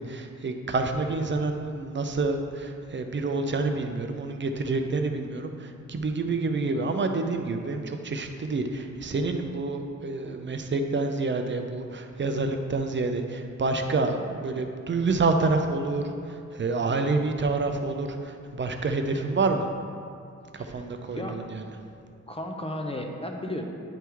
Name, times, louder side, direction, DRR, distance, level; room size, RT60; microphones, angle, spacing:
voice 1, 0.0-19.7 20.5-21.6, right 3 dB, 40° right, 5 dB, 0.5 m, -28 dB
voice 2, 22.3-23.6, left 1 dB, 20° left, 2 dB, 0.6 m, -34 dB
10.0 x 3.5 x 4.6 m, 2.4 s
wide cardioid pair, 135°, 29 cm